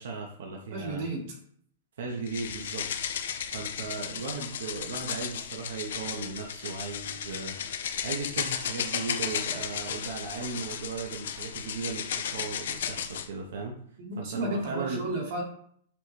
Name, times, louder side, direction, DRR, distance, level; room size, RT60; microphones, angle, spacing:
voice 1, 0.0-1.0 2.0-2.9 3.5-7.6 8.0-13.8 14.2-15.1, right 4 dB, 70° right, 0 dB, 0.7 m, -36 dB
voice 2, 0.7-1.3 14.0-15.4, right 2 dB, 45° right, 0 dB, 0.9 m, -33 dB
sound 1, 2.3-13.3, left 8 dB, 65° left, 0.4 m, -34 dB
6.0 x 2.2 x 3.1 m, 0.63 s
hypercardioid pair, 165°, 0 cm